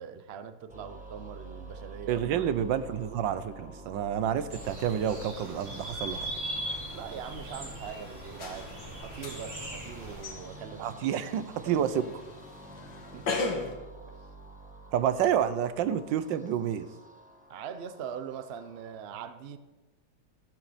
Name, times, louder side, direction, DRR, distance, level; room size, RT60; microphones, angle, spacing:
voice 1, 0.0-2.2 6.9-10.9 11.6-12.2 13.1-13.6 17.5-19.6, right 7 dB, 55° right, 11 dB, 0.7 m, -42 dB
sound 1, 0.7-19.0, right 3 dB, 5° right, 1.0 m, -49 dB
voice 2, 2.1-6.3 10.8-12.1 14.9-16.9, right 9 dB, 85° right, 13 dB, 1.4 m, -29 dB
sound 2, 4.5-10.2, right 1 dB, 40° right, 3.7 m, -39 dB
sound 3, 8.4-13.7, left 3 dB, 75° left, 2.1 m, -38 dB
13.5 x 12.5 x 4.2 m, 1.1 s
omnidirectional pair, 2.0 m